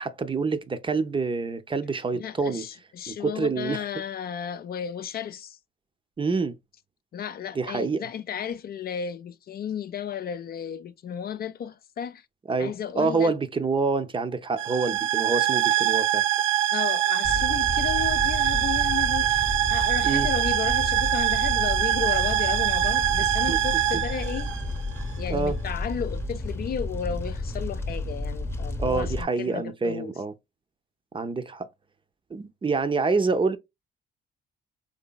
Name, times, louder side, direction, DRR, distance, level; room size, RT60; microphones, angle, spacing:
voice 1, 0.0-2.7 3.1-3.8 6.2-6.6 7.6-8.0 12.5-16.2 20.0-20.3 23.5-23.6 25.3-25.6 28.8-30.3 31.1-31.7 32.3-33.6, right 4 dB, 25° right, 0.5 m, -27 dB
voice 2, 2.1-5.6 7.1-12.3 12.6-13.3 16.7-24.5 25.2-30.1, left 8 dB, 50° left, 0.4 m, -33 dB
sound 1, 14.6-25.1, right 12 dB, 75° right, 0.5 m, -24 dB
Fire, 17.2-29.2, left 2 dB, 10° left, 0.8 m, -32 dB
4.0 x 3.2 x 2.2 m
cardioid pair, 90°, 20 cm